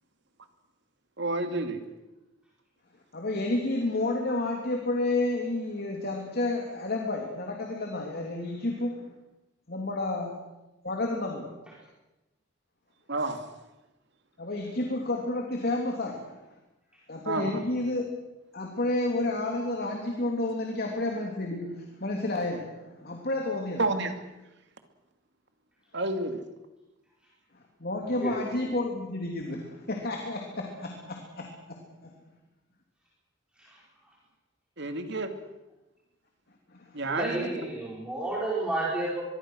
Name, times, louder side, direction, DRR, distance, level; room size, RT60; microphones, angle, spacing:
voice 1, 1.2-1.8 13.1-13.5 17.2-17.6 23.8-24.1 25.9-26.4 34.8-35.3 36.9-37.7, right 2 dB, 65° right, 7 dB, 2.5 m, -30 dB
voice 2, 3.1-9.1 9.7-10.4 10.8-11.5 14.4-16.4 17.1-18.0 18.5-23.8 27.5-32.1 36.7-37.0, left 2 dB, 55° left, 1 dB, 3.0 m, -31 dB
voice 3, 28.2-28.7 33.6-33.8 37.1-39.2, right 2 dB, 5° right, -6 dB, 4.9 m, -32 dB
24.5 x 22.5 x 6.4 m, 1.0 s
head